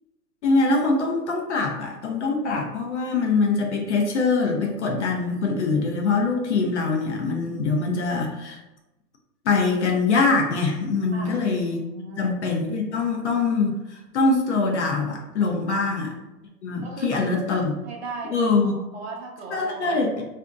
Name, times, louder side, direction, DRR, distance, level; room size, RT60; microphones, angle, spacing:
voice 1, 0.4-8.6 9.4-11.8 12.2-16.1 16.6-17.7 18.3-18.8 19.5-20.2, left 3 dB, 45° left, 1 dB, 0.5 m, -23 dB
voice 2, 11.1-11.4 11.9-12.3 15.7-15.8 16.8-17.3 17.8-20.0, right 3 dB, 40° right, 0 dB, 0.5 m, -37 dB
2.6 x 2.1 x 3.5 m, 0.98 s
hypercardioid pair, 130°, 50 cm